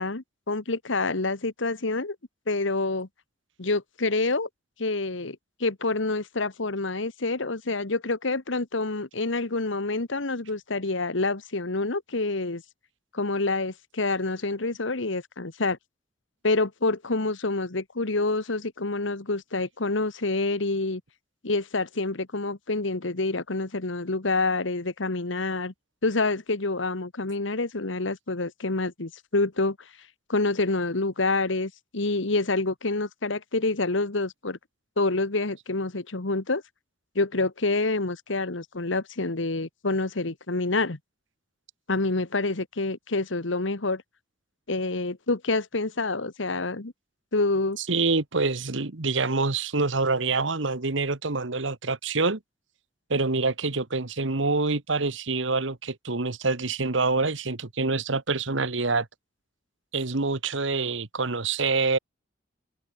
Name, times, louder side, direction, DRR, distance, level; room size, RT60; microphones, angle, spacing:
voice 1, 0.0-2.2 2.5-3.1 3.6-4.5 4.8-12.6 13.1-15.8 16.4-21.0 21.4-25.7 26.0-29.8 30.3-34.6 35.0-36.6 37.1-41.0 41.9-44.0 44.7-46.9 47.3-47.8, left 3 dB, 80° left, 1.5 m, -27 dB
voice 2, 47.8-52.4 53.1-59.1 59.9-62.0, right 3 dB, 75° right, 1.5 m, -26 dB
head